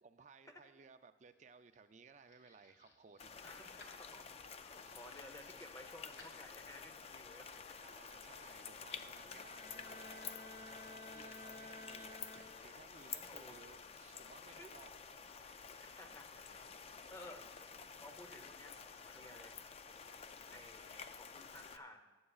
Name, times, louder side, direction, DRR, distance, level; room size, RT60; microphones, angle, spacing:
voice 1, 0.0-3.9 4.9-5.0 7.8-15.6, right 5 dB, 40° right, 10 dB, 0.4 m, -61 dB
sound 1, 1.0-7.0, left 2 dB, 75° left, 1.8 m, -64 dB
sound 2, 3.2-21.8, left 6 dB, 35° left, 0.4 m, -51 dB
voice 2, 3.4-7.8 11.3-11.4 13.2-13.6 14.6-14.7 15.5-16.6 17.1-17.5 18.0-19.6 20.5-22.1, left 1 dB, 15° left, 6 dB, 0.8 m, -56 dB
Bowed string instrument, 9.2-12.9, left 1 dB, 60° left, 1.3 m, -54 dB
19.5 x 8.7 x 2.4 m, 1.3 s
head